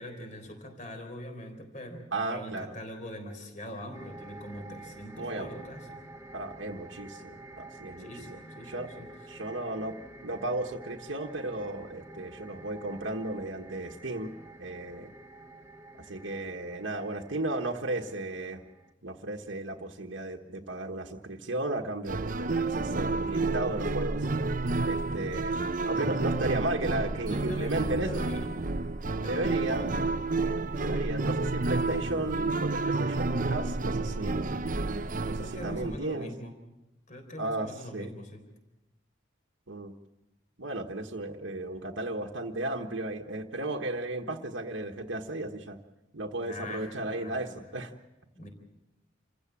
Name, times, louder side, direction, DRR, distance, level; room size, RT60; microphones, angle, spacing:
voice 1, 0.0-6.0 8.0-9.1 25.3-25.5 25.9-26.3 27.3-28.7 29.2-30.1 30.8-31.2 35.2-36.6 37.1-38.4 46.4-47.7 48.3-48.5, left 1 dB, 40° left, 6 dB, 3.9 m, -43 dB
voice 2, 2.1-2.7 5.2-5.5 6.3-8.4 8.6-8.9 9.3-15.1 16.1-18.6 19.0-24.3 24.8-25.6 25.8-28.3 29.3-29.9 30.8-34.7 35.3-36.3 37.4-38.1 39.7-39.9 40.6-45.8 46.1-47.9, right 2 dB, 70° right, 1 dB, 1.4 m, -34 dB
sound 1, 3.9-18.9, right 1 dB, 15° right, 1.0 m, -49 dB
sound 2, 22.1-36.0, right 3 dB, 40° right, 0.7 m, -30 dB
28.0 x 15.5 x 7.5 m, 0.96 s
head